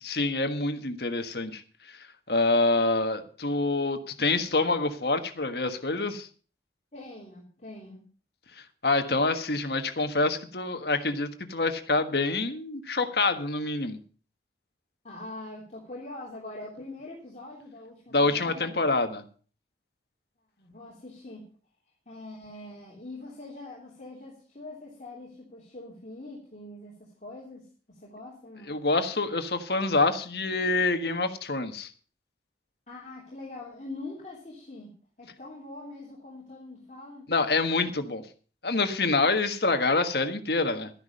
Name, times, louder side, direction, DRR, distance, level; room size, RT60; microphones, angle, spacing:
voice 1, 0.0-1.6 1.9-6.3 8.6-14.0 18.1-19.2 28.7-31.9 37.3-38.3 38.6-40.9, left 3 dB, 65° left, 8 dB, 1.5 m, -26 dB
voice 2, 6.9-8.0 15.0-18.7 20.6-21.5 22.0-28.7 32.9-34.9 35.2-37.3, left 2 dB, 40° left, -5 dB, 3.3 m, -43 dB
13.0 x 10.5 x 5.4 m, 0.39 s
head